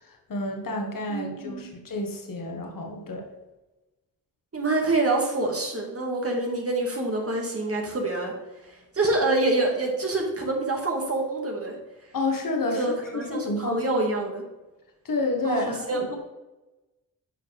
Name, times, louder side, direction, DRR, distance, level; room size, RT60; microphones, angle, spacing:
voice 1, 0.0-3.2 12.1-12.9 13.3-13.8 15.0-16.1, left 2 dB, 60° left, 2 dB, 1.6 m, -29 dB
voice 2, 1.1-1.8 4.5-8.3 8.9-11.8 12.7-14.4 15.4-16.1, right 2 dB, 35° right, 0 dB, 2.2 m, -26 dB
9.0 x 5.0 x 3.5 m, 1.1 s
cardioid pair, 50°, 38 cm